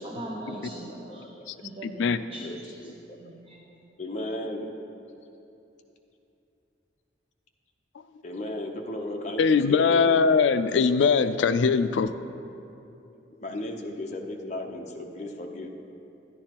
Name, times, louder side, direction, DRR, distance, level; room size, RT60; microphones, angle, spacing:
voice 1, 0.0-2.9 3.2-3.9, right 1 dB, 30° right, -2 dB, 0.6 m, -41 dB
voice 2, 0.5-1.5 2.2-3.2 4.0-4.7 8.2-10.1 13.4-15.7, left 1 dB, 40° left, 1 dB, 0.7 m, -36 dB
voice 3, 1.8-2.2 9.4-12.1, left 5 dB, 80° left, 12 dB, 0.4 m, -21 dB
11.5 x 10.5 x 2.9 m, 2.8 s
head